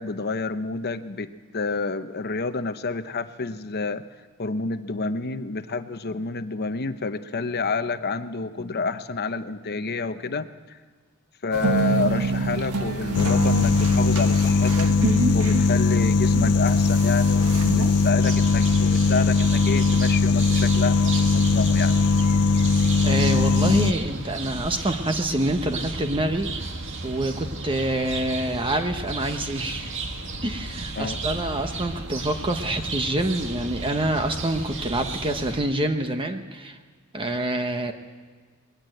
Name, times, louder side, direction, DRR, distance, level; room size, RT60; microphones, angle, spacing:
voice 1, 0.0-4.0 4.4-10.8 11.4-15.0 15.3-22.0 31.0-31.2, left 4 dB, 45° left, 10 dB, 0.9 m, -29 dB
sound 1, 11.5-18.1, right 3 dB, 80° right, 1.6 m, -28 dB
sound 2, 13.1-23.9, left 4 dB, 90° left, 0.6 m, -20 dB
sound 3, 18.2-35.6, right 2 dB, 60° right, 1.9 m, -34 dB
voice 2, 23.0-26.5 27.0-29.9 30.4-36.8 37.1-37.9, right 1 dB, 25° right, 6 dB, 1.1 m, -26 dB
21.0 x 18.5 x 7.9 m, 1.5 s
head